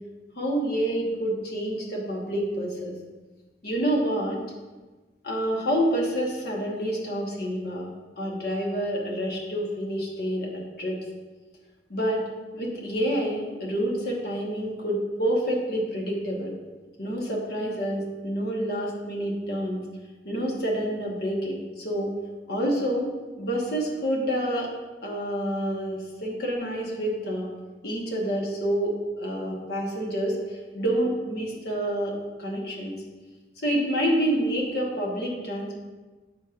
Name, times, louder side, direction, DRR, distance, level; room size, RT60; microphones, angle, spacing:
voice 1, 0.4-2.9 3.6-4.4 5.2-7.9 8.2-11.0 11.9-12.3 12.5-16.5 17.0-19.8 20.2-22.1 22.5-23.1 23.4-24.7 25.0-27.5 27.8-32.1 32.4-32.9 33.6-35.7, equal, 55° left, -2 dB, 1.2 m, -28 dB
7.1 x 5.7 x 2.5 m, 1.2 s
head